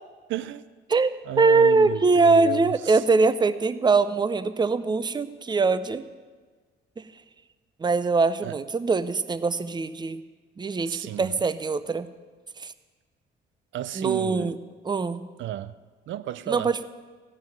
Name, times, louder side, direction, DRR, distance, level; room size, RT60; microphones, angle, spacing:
voice 1, 0.3-0.6 1.3-3.0 8.4-8.6 10.9-11.4 13.7-14.5 15.4-15.7 16.1-16.7, right 13 dB, 75° right, 0.5 m, -33 dB
voice 2, 0.9-6.0 7.0-7.1 7.8-10.2 10.6-12.1 12.6-12.7 13.9-14.6 14.8-15.3 16.5-16.8, right 4 dB, 20° right, 0.6 m, -22 dB
15.0 x 6.0 x 9.0 m
cardioid pair, 90°, 20 cm